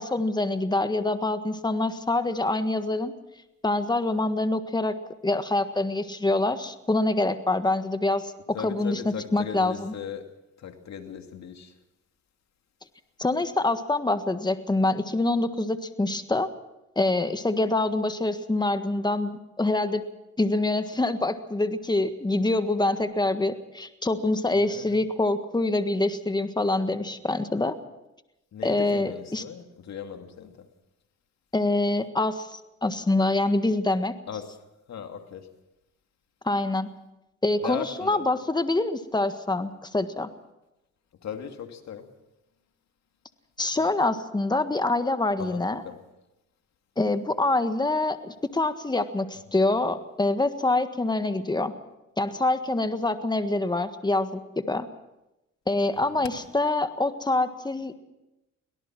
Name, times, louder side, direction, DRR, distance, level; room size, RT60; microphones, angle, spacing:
voice 1, 0.0-3.1 3.6-5.0 5.2-9.9 13.2-16.5 16.9-20.0 20.4-27.8 28.6-29.4 31.5-34.1 36.4-36.9 37.4-40.3 43.6-45.8 47.0-51.7 52.2-54.9 55.7-58.0, left 2 dB, 15° left, 1.6 m, -25 dB
voice 2, 8.5-10.3 10.6-11.7 24.5-25.0 28.5-30.7 34.3-34.5 34.9-35.5 37.6-38.3 41.2-42.1 43.7-43.9 45.4-46.0 56.1-56.3, left 8 dB, 60° left, 2.5 m, -38 dB
23.5 x 18.0 x 6.2 m
cardioid pair, 90°, 30 cm